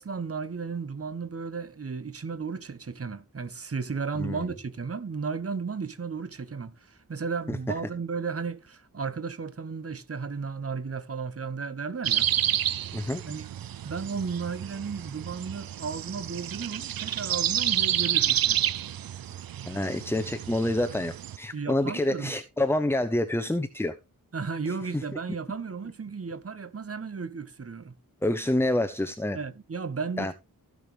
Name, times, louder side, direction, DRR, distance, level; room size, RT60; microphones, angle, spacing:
voice 1, 0.0-12.3 13.2-13.5 13.8-18.6 21.5-22.3 24.3-28.0 29.3-30.3, right 5 dB, 40° right, 1.3 m, -34 dB
sound 1, 12.0-21.4, right 11 dB, 75° right, 0.5 m, -29 dB
voice 2, 19.7-23.9 24.9-25.0 28.2-29.4 30.2-30.3, left 1 dB, 5° left, 0.9 m, -27 dB
16.0 x 6.3 x 3.4 m
wide cardioid pair, 120°, 35 cm